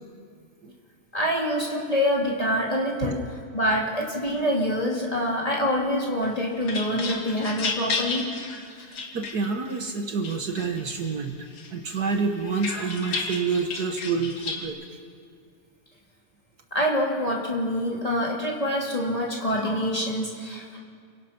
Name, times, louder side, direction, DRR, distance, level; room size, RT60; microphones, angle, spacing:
voice 1, 1.1-3.2 3.5-8.3 16.7-20.8, equal, 15° left, -3 dB, 2.4 m, -26 dB
sound 1, 6.2-9.8 10.2-11.1 11.6-14.7, left 3 dB, 50° left, 2.4 m, -33 dB
voice 2, 8.8-11.4 11.7-14.8, right 4 dB, 65° right, 4 dB, 1.0 m, -28 dB
29.5 x 17.0 x 5.9 m, 2.2 s
omnidirectional pair, 3.4 m